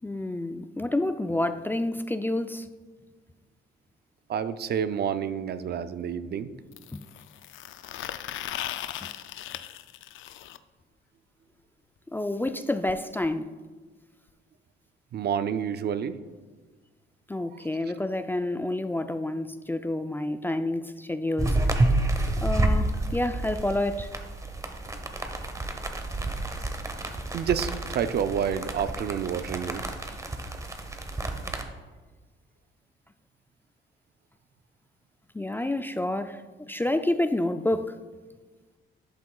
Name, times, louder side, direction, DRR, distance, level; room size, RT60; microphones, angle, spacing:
voice 1, 0.0-2.7 6.9-7.0 9.0-9.1 12.1-13.5 17.3-21.6 22.4-24.1 35.3-36.4 36.7-38.0, left 1 dB, 10° left, 9 dB, 0.3 m, -29 dB
voice 2, 4.3-6.5 15.1-16.2 27.3-29.8, right 8 dB, 55° right, 12 dB, 0.5 m, -29 dB
sound 1, 4.7-4.8 6.7-10.6 12.5-12.6 12.9-13.0 13.2-13.4 14.3-14.4, left 12 dB, 80° left, 0.4 m, -38 dB
sound 2, 21.4-31.6, right 2 dB, 15° right, 1.0 m, -29 dB
11.5 x 8.2 x 2.3 m, 1.4 s
cardioid pair, 90°, 20 cm